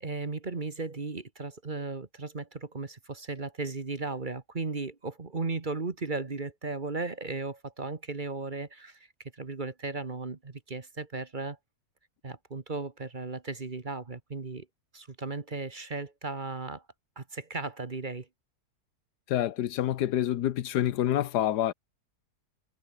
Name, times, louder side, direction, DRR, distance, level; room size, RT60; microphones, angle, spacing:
voice 1, 0.0-9.1 9.3-11.6 12.2-14.7 14.9-16.8 17.2-18.3, right 3 dB, 30° right, 1.5 m, -36 dB
voice 2, 19.3-21.7, left 12 dB, 90° left, 1.4 m, -27 dB
omnidirectional pair, 1.7 m